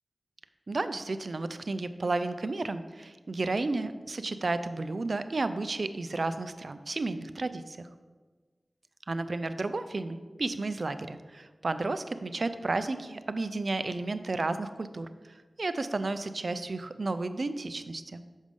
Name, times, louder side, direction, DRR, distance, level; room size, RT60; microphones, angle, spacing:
voice 1, 0.7-7.8 9.1-15.1 15.6-18.2, right 3 dB, 65° right, 11 dB, 0.4 m, -32 dB
6.3 x 5.1 x 5.3 m, 1.4 s
cardioid pair, 40°, 0 cm